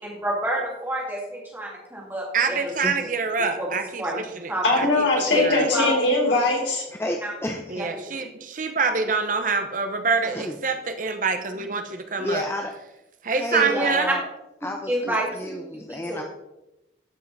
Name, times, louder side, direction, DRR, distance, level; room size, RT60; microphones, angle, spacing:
voice 1, 0.0-2.6 3.6-3.7 4.0-4.2 4.5-4.6 5.3-6.1 7.2-7.3 8.1-8.2 13.5-13.9 14.9-16.2, right 1 dB, 10° right, -3 dB, 2.4 m, -28 dB
voice 2, 2.3-4.5 4.8-4.9 5.4-5.7 7.7-12.4 13.2-14.1, right 4 dB, 45° right, 7 dB, 0.8 m, -25 dB
voice 3, 4.6-6.8, left 2 dB, 85° left, -2 dB, 3.8 m, -21 dB
voice 4, 7.0-7.8 10.2-10.5 12.2-12.7 13.3-14.3 14.6-16.2, left 1 dB, 15° left, 3 dB, 0.6 m, -31 dB
13.0 x 5.5 x 4.1 m, 0.91 s
head